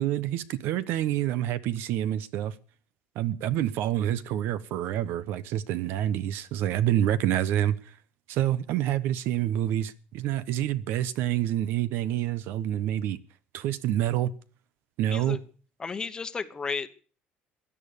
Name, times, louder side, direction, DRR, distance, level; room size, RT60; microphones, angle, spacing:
voice 1, 0.0-2.5 3.2-7.8 8.3-13.2 13.5-14.3 15.0-15.4, right 12 dB, 65° right, 1.0 m, -27 dB
voice 2, 15.8-16.9, left 5 dB, 20° left, 1.1 m, -33 dB
17.0 x 11.0 x 6.8 m
cardioid pair, 155°, 4 cm